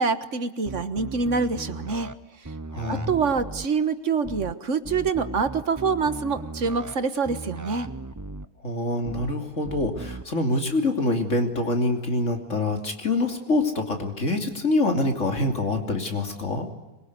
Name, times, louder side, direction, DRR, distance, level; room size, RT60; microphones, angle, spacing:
voice 1, 0.0-2.1 2.9-7.9, right 5 dB, 55° right, 11 dB, 1.7 m, -25 dB
sound 1, 0.7-2.1 2.4-3.7 4.2-4.5 4.8-6.9 7.2-8.5 9.0-9.3 9.6-10.2, right 3 dB, 15° right, 0.7 m, -37 dB
voice 2, 2.7-3.1 8.6-16.7, left 2 dB, 55° left, 4 dB, 3.4 m, -25 dB
25.5 x 23.0 x 9.7 m, 1.1 s
omnidirectional pair, 1.6 m